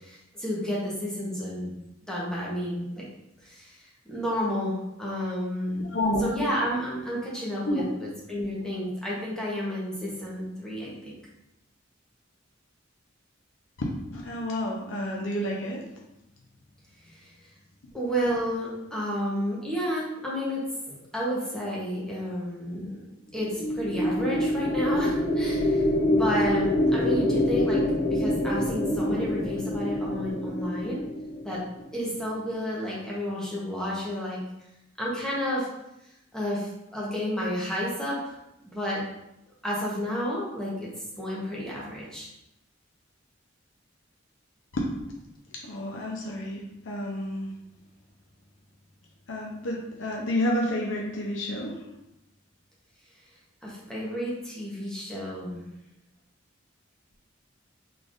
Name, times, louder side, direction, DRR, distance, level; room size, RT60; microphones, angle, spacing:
voice 1, 0.0-1.7 2.0-3.0 3.4-3.8 4.1-5.9 6.2-11.1 17.2-17.3 17.9-20.6 20.9-31.0 31.4-31.6 31.9-34.4 35.0-35.7 36.3-38.4 38.7-39.0 39.6-40.9 41.2-42.3 53.6-55.6, equal, 5° left, -6 dB, 0.9 m, -31 dB
voice 2, 5.9-6.2 7.6-7.9 13.8-15.8 44.7-44.9 45.6-47.5 49.3-51.8, left 1 dB, 75° left, -1 dB, 0.6 m, -30 dB
sound 1, 23.4-31.8, left 1 dB, 40° left, 0.7 m, -26 dB
3.8 x 3.3 x 2.5 m, 0.86 s
head